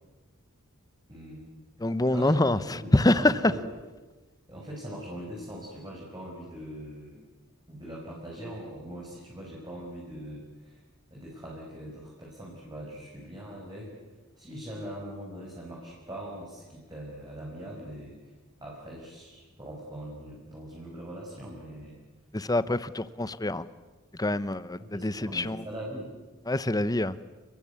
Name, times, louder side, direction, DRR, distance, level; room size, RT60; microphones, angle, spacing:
voice 1, 1.1-1.5 2.1-3.6 4.5-7.2 7.7-10.8 11.1-13.9 14.3-18.3 18.6-22.0 24.8-26.1, right 1 dB, 20° right, -3 dB, 5.8 m, -41 dB
voice 2, 1.8-3.3 22.3-23.7 24.2-25.6 26.5-27.2, left 1 dB, 15° left, 15 dB, 0.8 m, -25 dB
29.5 x 21.5 x 8.4 m, 1.2 s
head